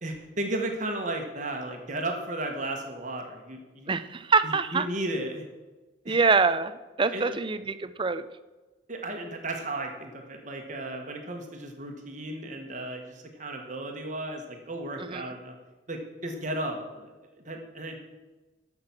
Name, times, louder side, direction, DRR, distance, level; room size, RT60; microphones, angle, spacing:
voice 1, 0.0-3.9 4.4-5.4 6.0-6.2 7.1-7.4 8.9-15.5 15.9-17.1 17.4-18.0, right 1 dB, 40° right, 2 dB, 1.5 m, -34 dB
voice 2, 3.9-4.9 6.1-8.2 15.0-15.3, right 4 dB, 25° right, 12 dB, 0.5 m, -25 dB
14.0 x 6.1 x 6.0 m, 1.2 s
head